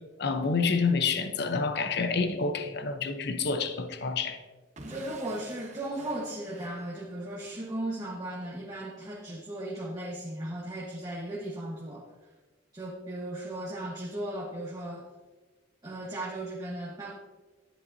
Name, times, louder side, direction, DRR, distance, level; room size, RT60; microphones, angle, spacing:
voice 1, 0.2-4.4, left 4 dB, 60° left, 8 dB, 0.8 m, -28 dB
Explosion / Shatter, 4.8-7.5, right 2 dB, 40° right, 1.0 m, -48 dB
voice 2, 4.9-12.0 12.7-15.1 15.8-17.1, right 1 dB, 20° right, -4 dB, 1.2 m, -36 dB
11.0 x 10.0 x 2.7 m, 1.2 s
head